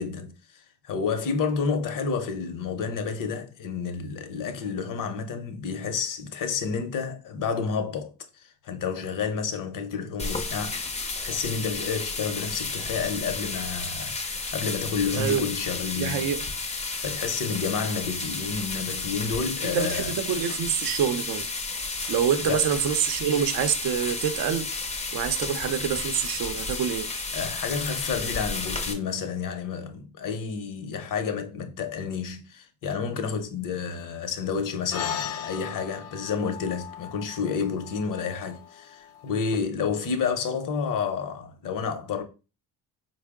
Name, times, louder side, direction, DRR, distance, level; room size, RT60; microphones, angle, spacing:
voice 1, 0.0-16.3 17.0-20.1 22.0-22.1 22.4-22.7 27.3-42.2, left 5 dB, 55° left, 0.7 m, -30 dB
sound 1, 10.2-28.9, left 3 dB, 20° left, 0.5 m, -32 dB
voice 2, 15.1-15.5 16.0-16.4 19.6-21.5 22.1-24.7 25.1-27.1, right 8 dB, 60° right, 0.6 m, -26 dB
sound 2, 34.9-39.6, left 8 dB, 90° left, 0.6 m, -37 dB
4.4 x 2.0 x 3.5 m
cardioid pair, 130°, 40 cm